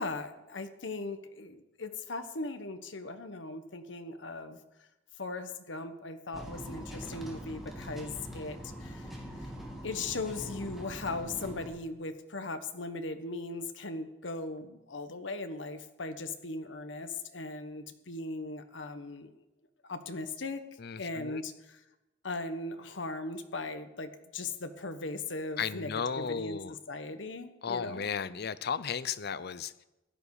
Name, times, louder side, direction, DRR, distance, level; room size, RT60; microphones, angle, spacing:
voice 1, 0.0-4.6 5.2-9.1 9.4-9.5 9.8-19.3 19.9-20.6 21.0-21.8 22.2-28.0, left 3 dB, 75° left, 9 dB, 1.3 m, -38 dB
sound 1, 6.3-11.7, equal, ahead, 2.7 m, -43 dB
voice 2, 20.8-21.4 25.6-26.7 27.6-29.7, left 6 dB, 60° left, 16 dB, 0.6 m, -34 dB
16.0 x 11.0 x 4.9 m, 0.97 s
head